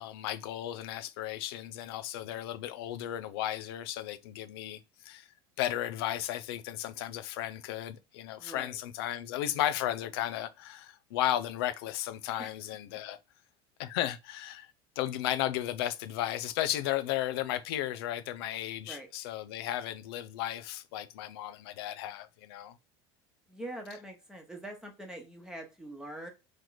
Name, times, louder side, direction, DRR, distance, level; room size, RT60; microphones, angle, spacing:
voice 1, 0.0-5.2 5.6-13.2 13.8-14.7 15.0-22.7, left 12 dB, 80° left, 0.5 m, -34 dB
voice 2, 8.4-8.8 12.4-12.5 18.8-19.1 23.5-26.3, right 1 dB, 5° right, 1.1 m, -43 dB
3.2 x 2.9 x 3.9 m
supercardioid pair, 95°, 13 cm